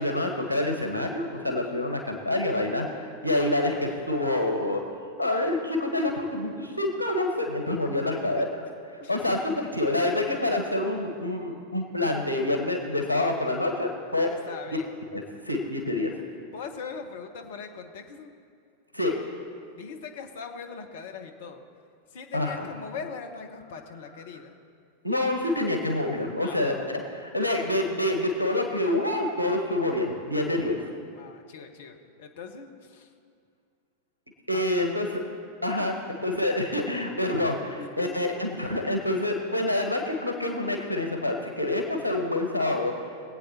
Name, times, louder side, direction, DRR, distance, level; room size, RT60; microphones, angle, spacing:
voice 1, 0.0-2.9 3.2-4.8 5.2-8.4 9.1-14.3 15.1-16.1 18.9-19.1 22.3-22.7 25.0-30.8 34.5-35.2 35.6-35.9 36.2-42.9, left 1 dB, 90° right, 2 dB, 1.3 m, -27 dB
voice 2, 8.1-8.5 9.0-9.3 14.3-14.9 16.5-18.3 19.8-21.6 22.1-24.5 26.4-27.1 30.6-30.8 31.1-33.1 34.5-35.0 35.8-36.1 37.6-38.3, left 5 dB, 55° left, 5 dB, 1.2 m, -41 dB
21.5 x 8.4 x 4.2 m, 2.3 s
figure-of-eight pair, 90°, 0 cm